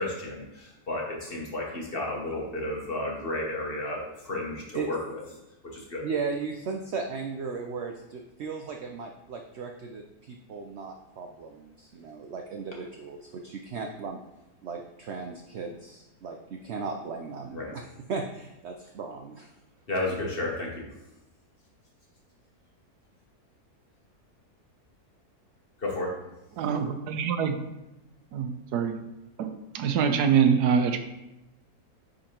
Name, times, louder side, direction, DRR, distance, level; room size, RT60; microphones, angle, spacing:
voice 1, 0.0-5.2 5.7-6.0 17.5-17.7 19.9-20.9 25.8-26.1, left 2 dB, 40° left, -2 dB, 1.2 m, -32 dB
voice 2, 6.0-14.2 14.6-19.5, right 5 dB, 65° right, 3 dB, 0.6 m, -36 dB
voice 3, 26.6-27.7 28.3-29.0 29.4-31.0, right 7 dB, 85° right, 8 dB, 1.2 m, -25 dB
9.7 x 3.8 x 2.9 m, 0.95 s
omnidirectional pair, 1.7 m